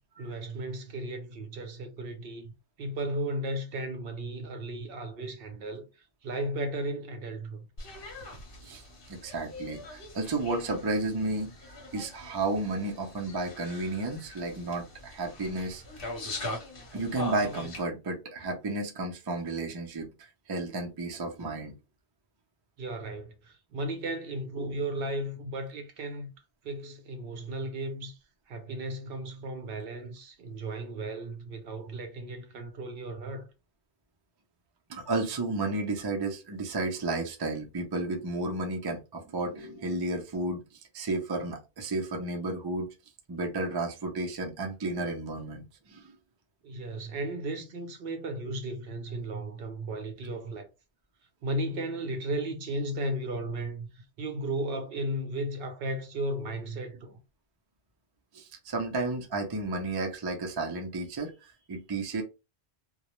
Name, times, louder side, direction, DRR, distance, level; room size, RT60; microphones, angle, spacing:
voice 1, 0.2-2.5 2.8-7.7 22.8-26.3 26.6-28.2 28.5-33.5 46.6-50.7 51.4-57.2, right 1 dB, 65° right, 0.7 m, -35 dB
sound 1, 7.8-17.8, left 2 dB, 55° left, 1.0 m, -42 dB
voice 2, 9.1-11.5 11.9-15.8 16.9-21.7 34.9-42.9 43.3-46.1 58.3-62.2, right 2 dB, 35° right, 0.3 m, -32 dB
2.3 x 2.0 x 2.9 m
omnidirectional pair, 1.1 m